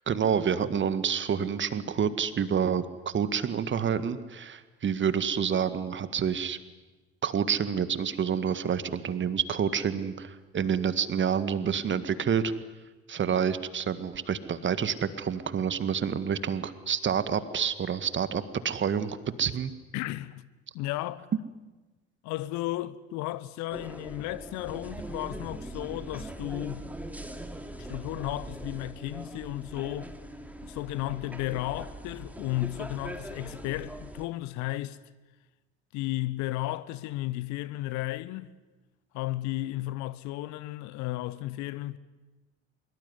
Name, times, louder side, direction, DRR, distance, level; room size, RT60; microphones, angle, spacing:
voice 1, 0.1-6.6 7.2-12.5 13.1-19.7, right 7 dB, 35° right, 1.8 m, -28 dB
voice 2, 19.9-20.4 20.7-21.3 22.2-26.8 27.8-30.1 30.6-35.0 35.9-38.5 39.1-42.0, left 17 dB, 55° left, 1.1 m, -34 dB
sound 1, 23.7-34.2, right 1 dB, 5° right, 2.9 m, -41 dB
24.5 x 23.0 x 9.8 m
figure-of-eight pair, 55°, 34 cm